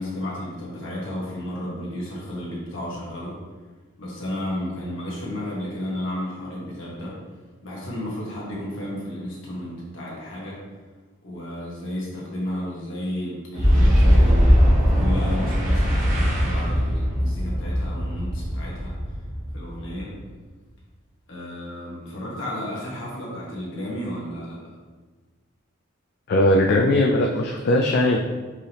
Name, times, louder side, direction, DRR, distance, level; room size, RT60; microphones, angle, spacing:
voice 1, 0.0-3.4 4.0-7.2 7.6-10.6 11.2-14.6 14.9-18.9 19.5-20.1 21.3-24.6, left 1 dB, 70° left, -5 dB, 1.3 m, -32 dB
Boom, 13.5-20.1, equal, 40° right, 1.0 m, -20 dB
voice 2, 26.3-28.2, left 1 dB, 50° left, 1 dB, 0.3 m, -19 dB
4.6 x 3.3 x 3.0 m, 1.3 s
head